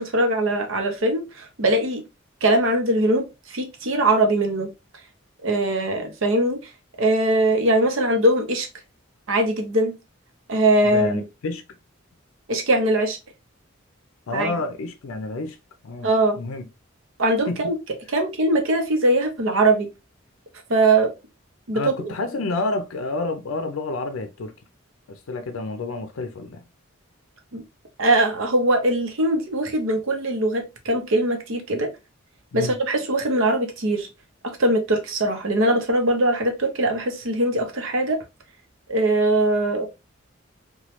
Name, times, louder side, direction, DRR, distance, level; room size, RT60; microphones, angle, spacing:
voice 1, 0.0-2.0 2.4-4.7 5.4-6.6 7.0-8.7 9.3-9.9 10.5-11.2 12.5-13.2 14.3-14.5 16.0-16.4 17.2-17.7 18.1-19.9 20.7-21.1 21.7-21.8 27.5-27.6 28.0-31.9 32.5-34.1 34.4-38.2 38.9-39.9, right 1 dB, 70° right, 0.7 m, -21 dB
voice 2, 10.8-11.6 14.3-15.6 15.8-16.1 16.4-16.7 17.5-17.6 21.7-24.5 25.1-26.6 32.5-32.8, left 2 dB, 85° left, 0.5 m, -29 dB
3.0 x 2.2 x 2.8 m
head